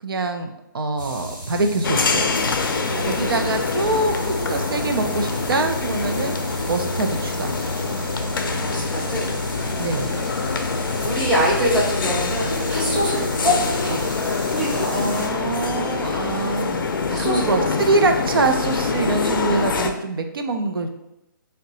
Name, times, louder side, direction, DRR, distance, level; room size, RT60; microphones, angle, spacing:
voice 1, 0.0-2.3 3.1-6.4 6.7-7.5 9.8-10.1 14.9-16.9 17.2-20.9, right 3 dB, 85° right, 6 dB, 0.5 m, -24 dB
sound 1, 1.0-15.3, right 1 dB, 60° right, 1.1 m, -32 dB
sound 2, 1.8-19.9, left 4 dB, 70° left, 0.4 m, -25 dB
voice 2, 2.9-3.7 8.2-9.3 11.0-13.6 13.8-14.0 14.5-15.3 17.1-17.6, equal, 5° right, -8 dB, 0.6 m, -25 dB
2.7 x 2.2 x 3.9 m, 0.88 s
hypercardioid pair, 165°, 12 cm